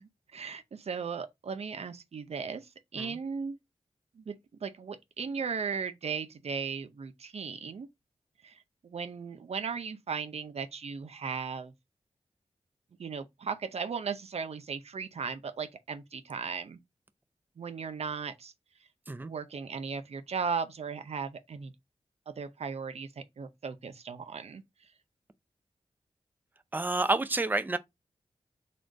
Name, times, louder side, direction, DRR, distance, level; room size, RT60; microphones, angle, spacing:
voice 1, 0.0-3.6 4.1-4.3 4.6-7.9 8.4-11.7 13.0-16.8 17.6-18.5 19.2-21.7 22.3-24.6, right 5 dB, 70° right, 0.6 m, -37 dB
voice 2, 26.7-27.8, right 2 dB, 15° right, 0.5 m, -29 dB
4.3 x 3.2 x 3.7 m
cardioid pair, 65°, 11 cm